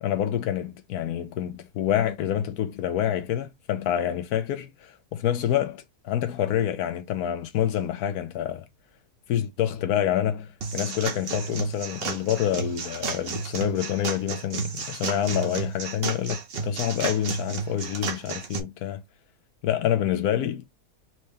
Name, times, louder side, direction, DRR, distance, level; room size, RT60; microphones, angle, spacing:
voice 1, 0.0-8.7 9.3-19.0 19.6-20.6, left 10 dB, 75° left, 1.1 m, -27 dB
sound 1, 10.6-18.6, right 5 dB, 50° right, 0.8 m, -32 dB
4.5 x 2.8 x 3.3 m
omnidirectional pair, 1.7 m